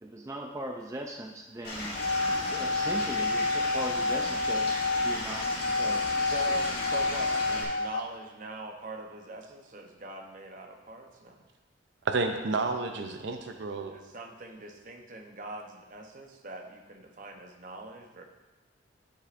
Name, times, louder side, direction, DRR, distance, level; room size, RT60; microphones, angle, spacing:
voice 1, 0.0-2.0 2.3-6.1, right 1 dB, 15° right, 1 dB, 0.4 m, -39 dB
Stream / Liquid, 1.6-7.6, left 1 dB, 50° left, 2.1 m, -36 dB
sound 1, 1.8-8.0, left 3 dB, 85° left, 0.5 m, -29 dB
voice 2, 6.3-11.5 13.9-18.2, right 2 dB, 45° right, 2 dB, 0.8 m, -43 dB
voice 3, 12.0-13.9, right 3 dB, 70° right, 6 dB, 0.5 m, -30 dB
10.5 x 6.6 x 2.5 m, 1.1 s
head